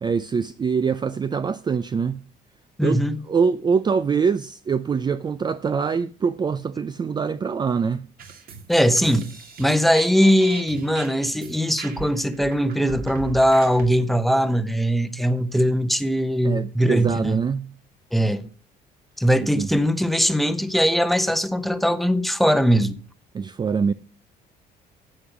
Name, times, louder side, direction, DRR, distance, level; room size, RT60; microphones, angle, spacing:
voice 1, 0.0-2.2 2.8-8.1 16.4-17.7 19.4-19.7 23.3-23.9, right 5 dB, 25° right, 0.5 m, -24 dB
voice 2, 2.8-3.2 8.7-9.3 9.6-17.4 18.1-18.4 19.2-23.0, equal, ahead, 0.9 m, -20 dB
sound 1, 8.2-13.9, right 4 dB, 60° right, 2.4 m, -39 dB
10.0 x 7.8 x 6.0 m
cardioid pair, 110°, 17 cm